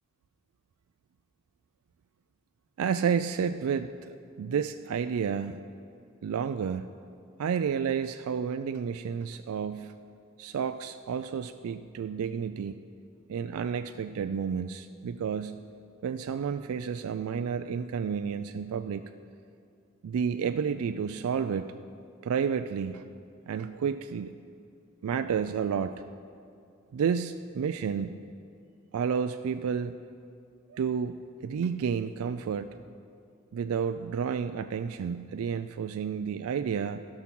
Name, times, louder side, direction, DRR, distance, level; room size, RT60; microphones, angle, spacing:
voice 1, 2.8-5.6 6.2-6.9 7.4-9.9 10.4-12.8 13.3-15.6 16.0-19.0 20.0-21.7 22.2-23.0 23.5-24.3 25.0-25.9 26.9-28.2 28.9-30.0 30.7-31.2 31.4-32.7 33.5-37.1, right 7 dB, 75° right, 9 dB, 0.3 m, -31 dB
15.5 x 5.9 x 6.1 m, 2.5 s
head